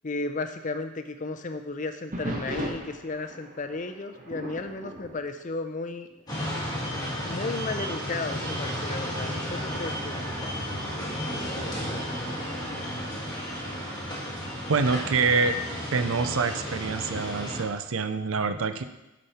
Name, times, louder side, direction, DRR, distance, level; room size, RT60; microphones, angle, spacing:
voice 1, 0.0-6.1 7.2-10.2, left 3 dB, 35° left, 8 dB, 0.5 m, -34 dB
sound 1, 2.1-6.3 6.6-6.9 7.6-7.7 8.4-11.1 12.9-13.4, equal, 35° right, 1.1 m, -39 dB
sound 2, 6.3-17.6, equal, 20° left, 1.7 m, -33 dB
voice 2, 14.7-15.6 15.9-18.8, right 4 dB, 75° right, 10 dB, 0.6 m, -26 dB
9.1 x 5.2 x 4.2 m, 0.98 s
head